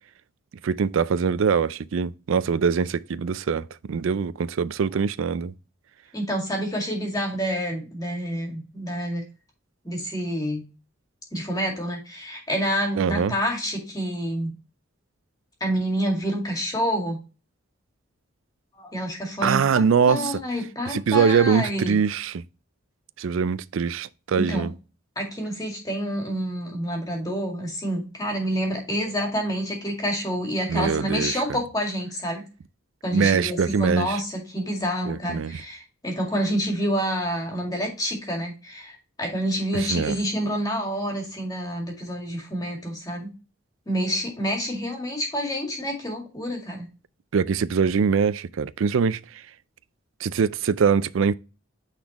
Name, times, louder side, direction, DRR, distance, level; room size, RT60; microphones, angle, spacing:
voice 1, 0.6-5.5 13.0-13.3 19.4-20.4 20.9-22.4 23.2-24.7 30.7-31.4 33.1-34.2 35.1-35.6 39.7-40.2 47.3-49.4 50.2-51.3, right 6 dB, 75° right, 0.4 m, -23 dB
voice 2, 6.1-9.2 9.8-10.6 11.3-14.5 15.6-17.2 18.7-22.0 24.3-24.7 25.2-32.5 33.0-43.3 43.9-46.9, equal, 20° left, 2.1 m, -28 dB
9.5 x 4.1 x 2.9 m
head